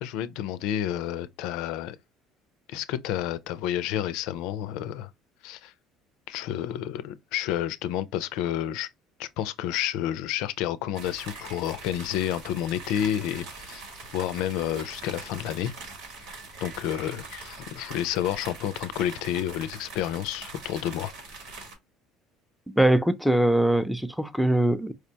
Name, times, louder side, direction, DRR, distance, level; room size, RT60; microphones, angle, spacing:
voice 1, 0.0-2.0 2.7-5.1 5.4-5.7 6.3-8.9 9.2-13.8 14.1-15.7 16.6-21.1, left 11 dB, 75° left, 0.4 m, -30 dB
sound 1, 10.9-21.8, right 3 dB, 75° right, 1.4 m, -42 dB
voice 2, 22.7-24.9, right 1 dB, ahead, 0.5 m, -22 dB
4.6 x 2.1 x 2.8 m
supercardioid pair, 90°, 0 cm